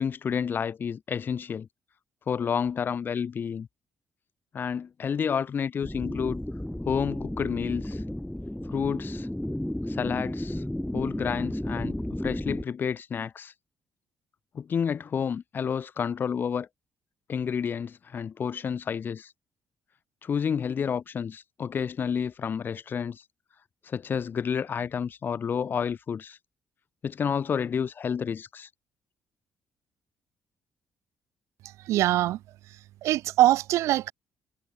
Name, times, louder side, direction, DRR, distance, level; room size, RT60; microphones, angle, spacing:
voice 1, 0.0-1.7 2.3-3.7 4.5-6.4 6.8-8.0 8.7-9.3 9.9-10.6 10.9-13.5 14.5-16.7 17.3-19.3 20.2-23.2 23.9-26.4 27.0-28.7, left 7 dB, 45° left, 1.0 m, -30 dB
sound 1, 5.8-12.6, left 1 dB, 5° left, 0.6 m, -33 dB
voice 2, 31.9-32.4 33.0-34.1, right 15 dB, 85° right, 0.4 m, -22 dB
cardioid pair, 110°, 5 cm